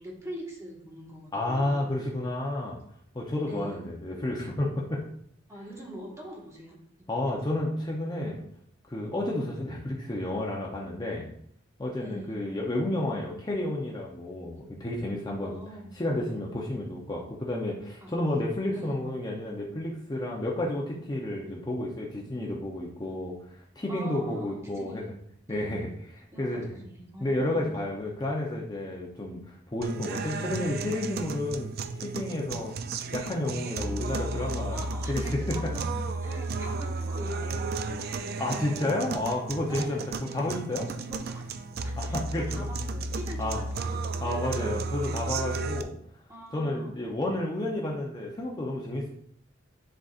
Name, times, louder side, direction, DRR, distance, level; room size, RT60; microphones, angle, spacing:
voice 1, 0.0-1.9 3.4-3.8 5.5-6.8 7.2-7.3 11.9-12.4 15.4-15.9 18.0-18.1 18.7-19.0 23.9-25.1 25.5-25.9 26.3-27.6 33.6-34.1 34.7-38.9 39.7-44.3 44.5-44.9 46.3-46.9, equal, 15° right, -2 dB, 1.5 m, -43 dB
voice 2, 1.3-2.8 3.1-5.0 7.1-8.4 8.9-11.3 11.8-15.6 15.9-23.3 23.8-25.1 25.5-26.8 27.2-31.7 32.0-32.7 33.1-34.8 35.1-35.7 38.4-40.9 42.0-42.7 43.4-43.6 44.2-46.0 46.5-49.1, left 1 dB, 20° left, -1 dB, 0.7 m, -31 dB
sound 1, 29.8-45.8, right 3 dB, 55° right, 0.4 m, -33 dB
10.0 x 4.0 x 2.5 m, 0.67 s
head